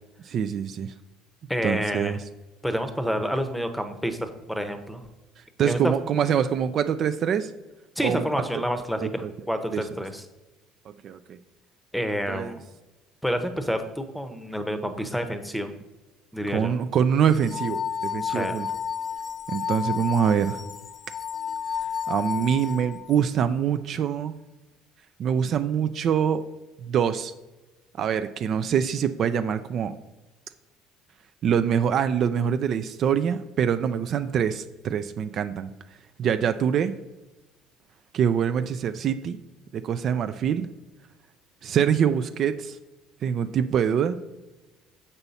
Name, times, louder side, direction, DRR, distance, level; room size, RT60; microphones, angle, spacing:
voice 1, 0.2-0.9 1.6-2.2 5.6-7.5 8.0-8.3 8.5-8.6 9.0-9.3 9.7-9.8 11.0-11.4 12.3-12.6 16.5-18.7 19.5-20.6 22.1-24.3 25.2-26.4 26.8-27.3 28.0-29.9 31.4-35.7 36.2-36.9 38.1-39.4 39.7-40.7 41.6-42.8 43.2-44.2, right 8 dB, 50° right, 10 dB, 0.4 m, -24 dB
voice 2, 1.5-2.2 2.6-5.0 5.6-5.9 8.0-10.2 11.9-12.6 13.2-15.7 16.3-16.7 18.2-18.6, equal, ahead, 8 dB, 0.8 m, -28 dB
sound 1, 17.3-23.2, left 7 dB, 30° left, 0.4 m, -31 dB
7.0 x 5.5 x 4.1 m, 1.1 s
supercardioid pair, 90°, 0 cm